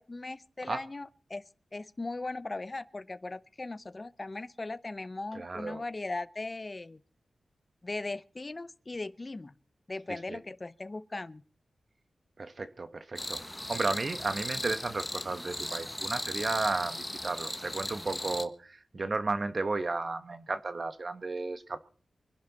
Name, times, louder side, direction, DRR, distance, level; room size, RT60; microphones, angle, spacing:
voice 1, 0.0-1.4 1.7-7.0 7.8-9.5 9.9-11.4, left 2 dB, 35° left, 0.7 m, -38 dB
voice 2, 5.3-5.8 10.1-10.4 12.4-21.8, right 3 dB, 50° right, 1.3 m, -34 dB
sound 1, 13.2-18.4, left 1 dB, 10° left, 1.4 m, -37 dB
24.5 x 11.0 x 4.2 m
wide cardioid pair, 80°, 0 cm